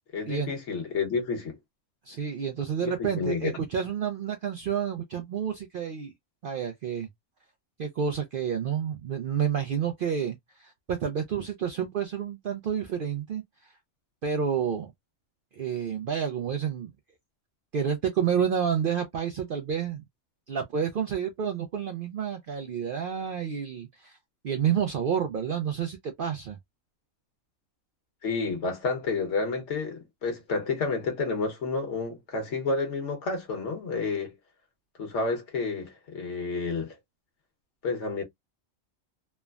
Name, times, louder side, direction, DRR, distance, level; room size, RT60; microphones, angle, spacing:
voice 1, 0.1-1.6 2.8-3.5 28.2-34.4 35.0-37.0 37.8-38.2, left 4 dB, 60° left, 1.3 m, -30 dB
voice 2, 2.1-6.1 6.4-7.1 7.8-13.7 14.2-14.9 15.5-16.9 17.7-20.0 20.5-24.2 24.4-26.6, right 7 dB, 70° right, 0.5 m, -29 dB
3.2 x 2.1 x 2.2 m
omnidirectional pair, 1.4 m